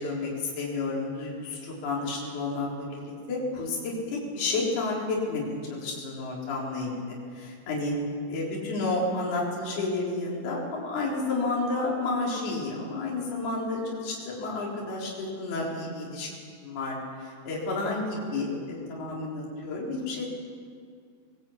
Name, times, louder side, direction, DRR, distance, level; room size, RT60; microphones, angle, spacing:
voice 1, 0.0-7.9 8.3-16.3 16.6-20.3, left 3 dB, 55° left, -4 dB, 6.0 m, -31 dB
21.5 x 18.5 x 8.8 m, 2.1 s
omnidirectional pair, 5.6 m